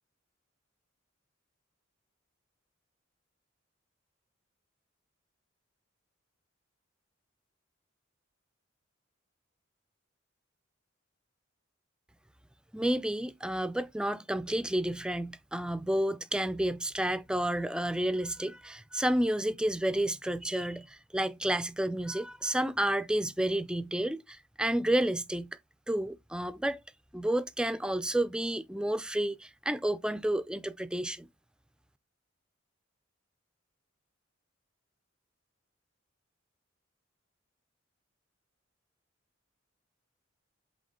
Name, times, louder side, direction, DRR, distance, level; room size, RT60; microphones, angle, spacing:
voice 1, 12.7-25.6 25.9-26.8 27.1-31.3, right 1 dB, 5° right, 0.4 m, -30 dB
7.7 x 3.6 x 3.7 m
head